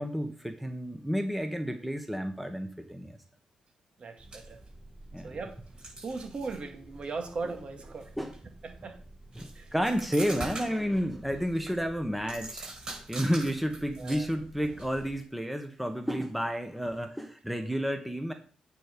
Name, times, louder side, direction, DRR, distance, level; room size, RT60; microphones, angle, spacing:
voice 1, 0.0-3.2 5.1-5.4 8.2-8.4 9.4-12.7 13.1-18.3, equal, ahead, 6 dB, 1.3 m, -31 dB
voice 2, 4.0-4.6 5.2-5.6 6.0-8.1 8.6-9.0 9.6-9.7 14.0-14.3, right 4 dB, 50° right, 5 dB, 1.9 m, -38 dB
sound 1, 4.2-15.2, right 2 dB, 35° right, 5.2 m, -45 dB
9.2 x 4.7 x 5.2 m, 0.41 s
supercardioid pair, 60°, 2 cm